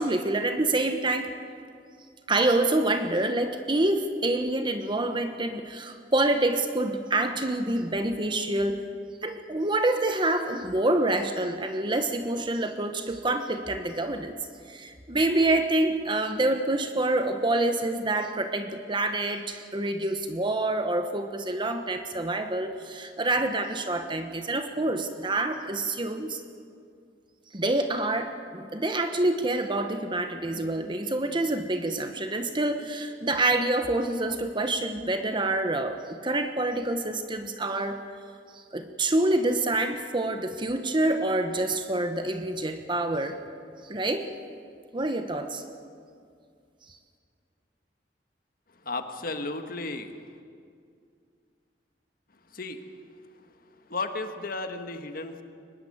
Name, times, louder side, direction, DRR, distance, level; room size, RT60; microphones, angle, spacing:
voice 1, 0.0-1.3 2.3-8.8 9.2-14.3 14.7-26.4 27.5-38.0 38.5-43.4 43.8-44.3 44.9-45.6, right 2 dB, 30° right, 7 dB, 1.1 m, -27 dB
voice 2, 48.8-50.1 52.5-52.9 53.9-55.4, left 3 dB, 55° left, 7 dB, 1.7 m, -34 dB
23.5 x 20.5 x 7.9 m, 2.3 s
head